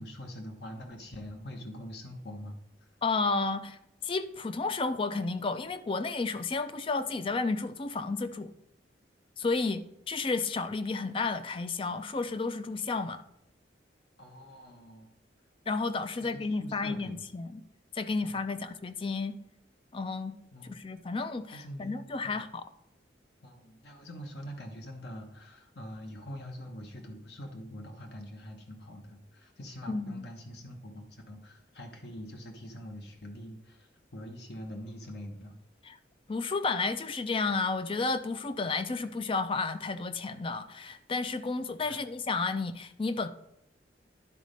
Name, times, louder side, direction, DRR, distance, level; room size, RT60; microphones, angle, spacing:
voice 1, 0.0-2.6 14.2-15.1 16.2-17.1 18.2-18.4 20.5-20.8 21.5-22.0 22.2-22.4 23.4-35.5 41.8-42.0, equal, 65° left, 3 dB, 1.1 m, -44 dB
voice 2, 3.0-8.5 9.4-13.2 15.7-17.6 17.9-19.3 19.9-20.3 20.6-22.6 29.9-30.3 35.8-36.0 36.3-43.3, left 3 dB, 30° left, 11 dB, 0.4 m, -32 dB
10.5 x 4.1 x 5.1 m, 0.80 s
head